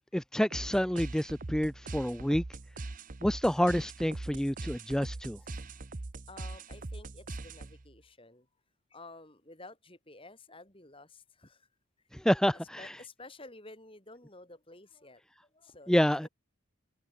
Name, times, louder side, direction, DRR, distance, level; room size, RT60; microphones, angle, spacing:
voice 1, 0.1-2.4 3.2-5.4 12.1-12.9 15.9-16.3, equal, 5° left, 0.5 m, -28 dB
sound 1, 0.5-8.0, right 2 dB, 40° right, 0.7 m, -42 dB
voice 2, 4.6-4.9 5.4-5.6 6.3-8.5 8.9-11.7 12.8-15.2 15.5-16.3, left 2 dB, 25° left, 4.6 m, -52 dB
head